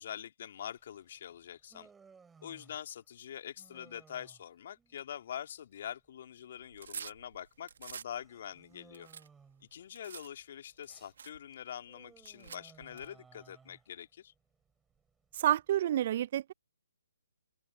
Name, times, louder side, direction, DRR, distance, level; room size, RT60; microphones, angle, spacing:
voice 1, 0.0-1.9 2.4-9.1 9.7-14.3, left 9 dB, 50° left, 2.4 m, -45 dB
Human voice, 0.8-16.0, right 5 dB, 10° right, 4.7 m, -63 dB
sound 1, 6.6-8.1 8.6-10.3 10.8-10.9 11.2-11.4 12.2-13.1, right 7 dB, 60° right, 1.6 m, -47 dB
voice 2, 15.3-16.5, right 12 dB, 45° right, 0.5 m, -29 dB
figure-of-eight pair, 140°, 0 cm